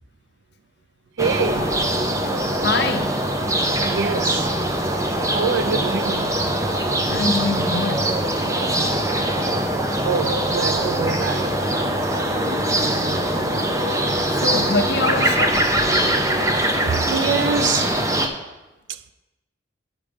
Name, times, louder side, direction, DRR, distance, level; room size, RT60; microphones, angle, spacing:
sound 1, 1.2-18.3, right 1 dB, 15° right, 0.6 m, -22 dB
voice 1, 1.2-1.8 3.8-4.4 5.3-6.4 10.0-11.6 17.1-18.0, right 5 dB, 65° right, 0.4 m, -25 dB
voice 2, 2.6-3.1 7.1-8.2 14.3-15.6, left 3 dB, 55° left, 0.7 m, -24 dB
8.7 x 5.0 x 5.1 m
head